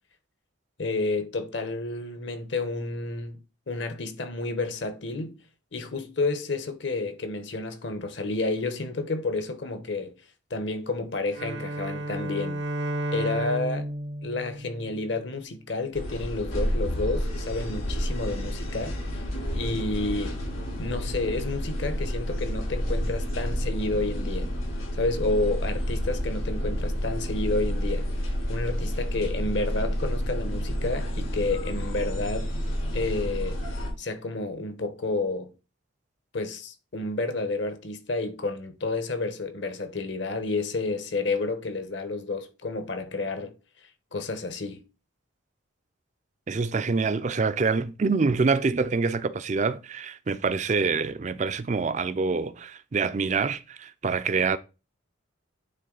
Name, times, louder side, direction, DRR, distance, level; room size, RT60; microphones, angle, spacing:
voice 1, 0.8-3.4 3.7-5.4 5.7-10.1 10.5-12.6 13.1-13.9 14.2-19.2 19.5-20.4 20.8-24.5 24.9-28.1 28.5-32.5 32.9-33.6 34.0-35.5 36.3-43.5 44.1-44.8, left 3 dB, 60° left, 1.0 m, -30 dB
Bowed string instrument, 11.3-15.5, right 1 dB, 60° right, 0.7 m, -33 dB
sound 1, 15.9-33.9, equal, 90° left, 3.3 m, -30 dB
voice 2, 46.5-54.6, right 4 dB, 35° right, 0.4 m, -26 dB
9.1 x 3.6 x 3.9 m
head